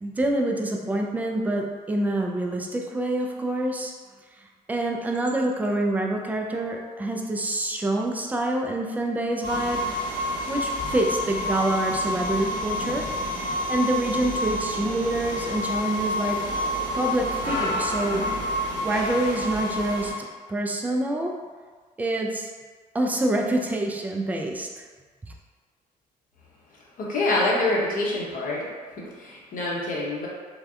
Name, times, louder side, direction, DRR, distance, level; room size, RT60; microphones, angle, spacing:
voice 1, 0.0-3.9 4.7-9.8 10.5-13.3 13.7-16.5 16.9-18.2 18.8-21.3 22.0-22.5 22.9-24.8, right 1 dB, 10° right, 1 dB, 0.3 m, -26 dB
sound 1, 9.4-20.1, left 1 dB, 85° right, 0.6 m, -28 dB
voice 2, 27.0-28.7 29.2-30.3, left 2 dB, 40° left, -4 dB, 0.7 m, -25 dB
3.3 x 2.1 x 2.3 m, 1.5 s
figure-of-eight pair, 45°, 21 cm